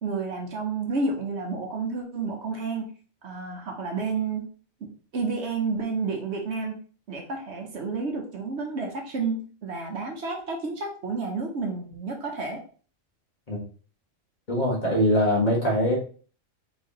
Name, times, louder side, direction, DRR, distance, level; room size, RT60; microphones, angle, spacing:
voice 1, 0.0-2.9 3.2-4.4 5.1-6.8 7.1-12.6, right 4 dB, 65° right, 1 dB, 1.2 m, -30 dB
voice 2, 14.5-16.0, equal, 40° left, -3 dB, 1.6 m, -22 dB
4.6 x 3.6 x 3.0 m, 0.40 s
omnidirectional pair, 1.3 m